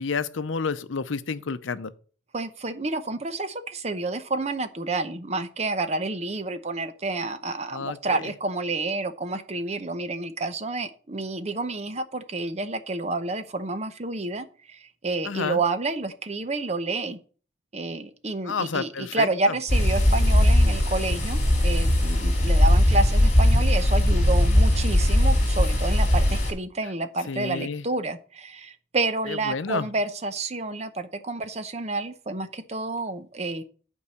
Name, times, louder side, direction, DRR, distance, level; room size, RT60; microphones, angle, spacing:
voice 1, 0.0-1.9 7.7-8.2 15.2-15.6 18.4-19.5 27.3-27.8 29.3-29.9, left 5 dB, 80° left, 0.6 m, -30 dB
voice 2, 2.3-17.2 17.7-33.6, right 3 dB, 35° right, 0.7 m, -29 dB
sound 1, 19.7-26.5, left 1 dB, 35° left, 2.6 m, -19 dB
8.5 x 4.6 x 6.6 m
head